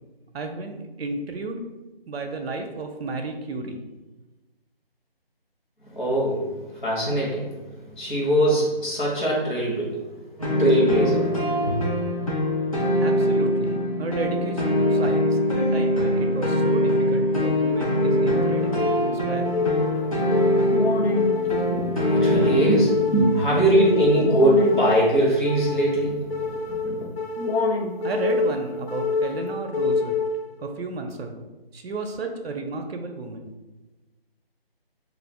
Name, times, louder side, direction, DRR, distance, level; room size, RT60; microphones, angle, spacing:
voice 1, 0.3-1.6 2.1-3.8 13.0-19.6 28.0-30.2 30.6-31.5 31.7-33.5, right 3 dB, 85° right, 4 dB, 0.5 m, -33 dB
voice 2, 5.9-11.9 21.4-27.1, right 1 dB, 50° left, -5 dB, 0.9 m, -23 dB
sound 1, 10.4-22.8, equal, 35° left, 0.5 m, -23 dB
sound 2, 17.7-30.7, left 3 dB, 85° left, 0.5 m, -27 dB
2.4 x 2.1 x 3.2 m, 1.1 s
figure-of-eight pair, 175°, 30 cm